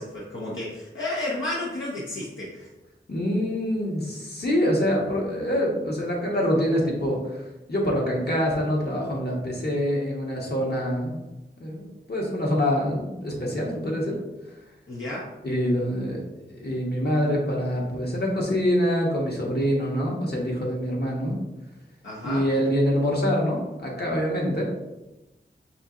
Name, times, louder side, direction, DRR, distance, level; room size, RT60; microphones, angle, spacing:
voice 1, 0.0-2.7 14.9-15.3 22.0-22.5, left 1 dB, 80° left, -5 dB, 0.7 m, -32 dB
voice 2, 3.1-7.4 7.7-11.2 11.6-14.2 15.4-16.2 16.5-21.4 22.2-24.6, equal, 55° left, -2 dB, 1.1 m, -25 dB
5.3 x 2.8 x 2.4 m, 1.0 s
wide cardioid pair, 50°, 20 cm